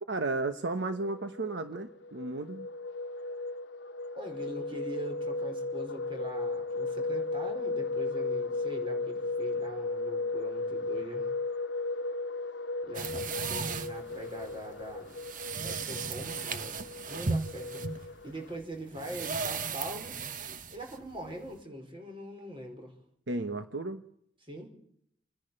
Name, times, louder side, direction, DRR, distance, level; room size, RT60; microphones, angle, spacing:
voice 1, 0.1-2.7 23.3-24.0, right 2 dB, 75° right, 8 dB, 1.1 m, -33 dB
sound 1, 0.8-18.6, left 3 dB, 80° left, 1.1 m, -36 dB
voice 2, 4.2-11.3 12.9-15.2 15.6-16.7 17.0-20.2 20.7-23.0 24.4-24.7, equal, 30° right, 3 dB, 5.0 m, -42 dB
sound 2, 12.9-21.6, right 5 dB, 50° right, 1.0 m, -36 dB
28.5 x 10.5 x 8.9 m, 0.71 s
head